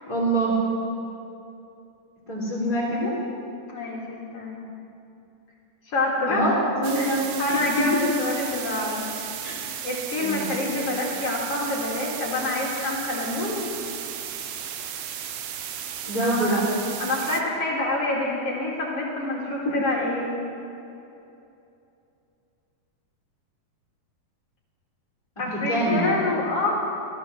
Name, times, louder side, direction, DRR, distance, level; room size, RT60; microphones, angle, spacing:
voice 1, 0.1-0.6 2.3-3.1 6.3-6.5 6.8-7.8 9.4-9.6 10.2-10.5 16.0-16.6 19.6-19.7 25.5-26.1, right 1 dB, 10° left, -11 dB, 3.2 m, -25 dB
voice 2, 3.7-4.6 5.9-6.4 7.0-7.1 7.4-9.0 9.8-13.7 16.1-16.6 17.0-20.3 25.4-26.7, left 2 dB, 50° left, -3 dB, 2.9 m, -27 dB
sound 1, 6.8-17.4, right 9 dB, 75° right, 1.5 m, -35 dB
16.5 x 13.0 x 6.5 m, 2.8 s
omnidirectional pair, 3.9 m